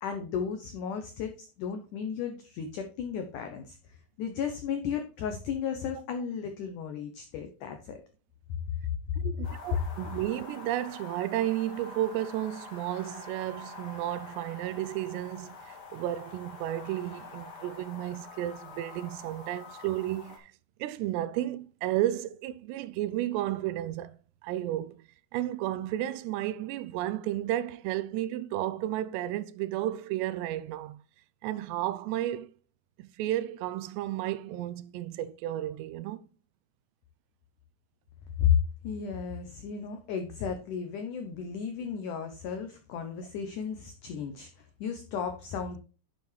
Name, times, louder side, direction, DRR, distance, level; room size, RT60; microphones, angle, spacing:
voice 1, 0.0-8.0 38.4-38.6 38.8-44.5 44.8-45.8, left 7 dB, 90° left, 1.8 m, -33 dB
voice 2, 9.2-20.5 20.8-24.2 24.4-25.0 25.3-31.0 31.4-32.5 33.0-36.2, right 13 dB, 85° right, 2.8 m, -32 dB
sound 1, 9.4-20.4, left 3 dB, 60° left, 1.0 m, -46 dB
9.5 x 7.0 x 3.2 m
omnidirectional pair, 4.8 m